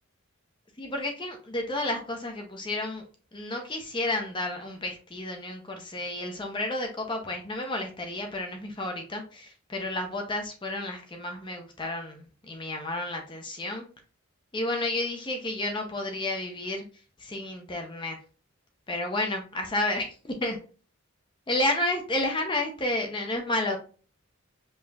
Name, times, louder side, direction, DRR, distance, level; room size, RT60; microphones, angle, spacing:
voice 1, 0.8-3.0 3.3-13.8 14.5-16.8 17.2-18.2 18.9-20.6 21.5-23.8, left 1 dB, 20° left, 3 dB, 0.6 m, -31 dB
5.3 x 2.9 x 2.3 m, 0.37 s
head